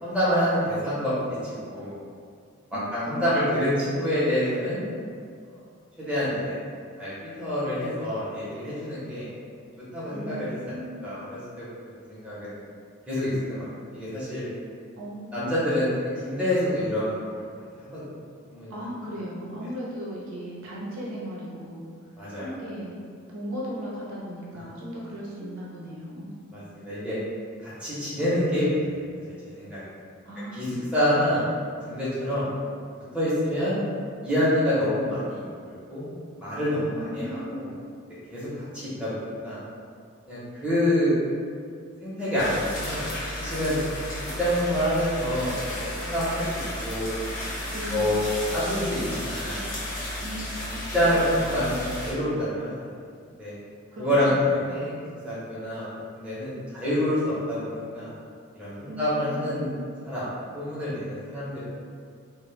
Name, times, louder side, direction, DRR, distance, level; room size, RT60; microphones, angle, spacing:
voice 1, 0.0-1.1 1.4-1.9 2.9-4.8 6.0-6.5 7.0-9.3 9.9-10.5 11.0-11.7 12.1-12.5 13.1-14.4 15.3-15.9 16.2-17.4 17.9-18.0 18.5-18.7 22.2-22.5 26.5-27.1 27.6-29.8 30.5-30.7 30.9-31.4 31.8-32.5 33.1-33.8 34.2-36.1 36.4-37.7 38.3-38.5 38.7-39.6 40.3-41.2 42.0-43.1 43.4-43.8 44.4-47.1 47.9-48.2 48.5-49.6 50.9-52.7 53.4-53.5 54.0-54.9 55.2-55.8 56.1-58.1 58.5-59.7 60.0-60.2 60.5-61.6, equal, 5° right, -11 dB, 0.6 m, -27 dB
voice 2, 2.7-3.8 10.1-11.0 15.0-15.8 18.7-21.9 22.3-23.1 23.3-26.3 30.2-31.2 36.9-37.8 47.6-48.2 50.2-51.0 53.9-54.7 58.8-59.8, equal, 85° right, -6 dB, 0.6 m, -37 dB
sound 1, 42.4-52.1, left 1 dB, 65° left, 0.8 m, -33 dB
2.0 x 2.0 x 3.0 m, 2.1 s
head